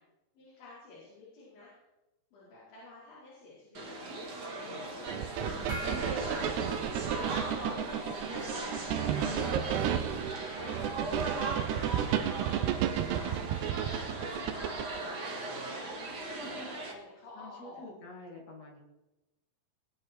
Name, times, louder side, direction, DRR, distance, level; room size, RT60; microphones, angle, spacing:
voice 1, 0.4-1.7 2.3-3.8 4.7-6.8 7.6-8.0 8.4-10.0 10.5-12.3 12.9-17.9, left 3 dB, 70° left, -9 dB, 7.0 m, -52 dB
sound 1, 3.7-16.9, right 2 dB, 50° right, 1.1 m, -38 dB
sound 2, 5.1-15.0, right 9 dB, 80° right, 2.6 m, -33 dB
Gong, 5.7-7.7, left 1 dB, 25° right, 1.7 m, -43 dB
voice 2, 9.2-9.9 13.4-13.6 17.3-18.8, left 2 dB, 50° left, 0 dB, 2.1 m, -49 dB
21.5 x 8.9 x 4.6 m, 1.0 s
omnidirectional pair, 5.6 m